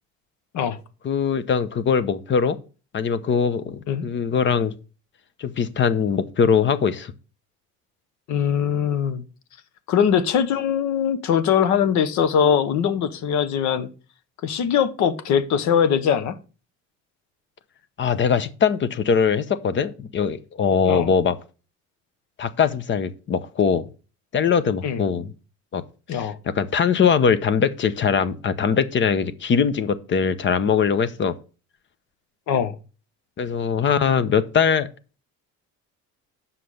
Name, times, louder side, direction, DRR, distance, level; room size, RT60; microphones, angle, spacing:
voice 1, 1.0-2.6 2.9-4.7 5.4-7.1 18.0-21.4 22.4-23.9 24.3-25.3 25.7-25.8 26.1-31.4 33.4-34.9, left 6 dB, 40° left, 0.9 m, -21 dB
voice 2, 8.3-9.3 9.9-13.9 14.4-16.4 20.8-21.1 24.8-25.0 26.1-26.4 32.5-32.7, left 8 dB, 70° left, 1.2 m, -21 dB
7.5 x 5.8 x 6.5 m
cardioid pair, 125°, 30 cm